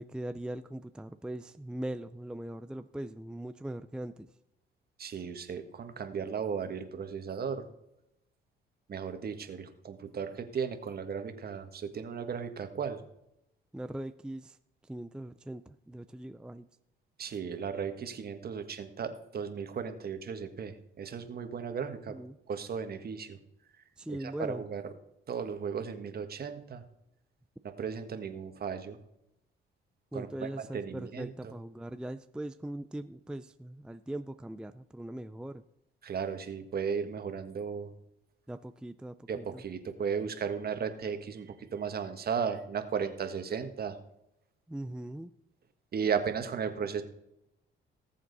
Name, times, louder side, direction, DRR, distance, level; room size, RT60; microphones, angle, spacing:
voice 1, 0.0-4.3 13.7-14.6 14.8-16.7 21.8-22.4 24.0-24.6 30.1-35.6 38.5-39.6 44.7-45.3, right 1 dB, 5° right, 11 dB, 0.5 m, -40 dB
voice 2, 5.0-7.7 8.9-13.0 17.2-22.2 22.5-23.4 24.1-24.8 25.3-26.8 27.6-29.0 30.1-31.5 36.0-37.9 39.3-44.0 45.9-47.0, right 6 dB, 50° right, 7 dB, 1.6 m, -35 dB
19.0 x 7.5 x 4.1 m, 0.83 s
cardioid pair, 90°, 20 cm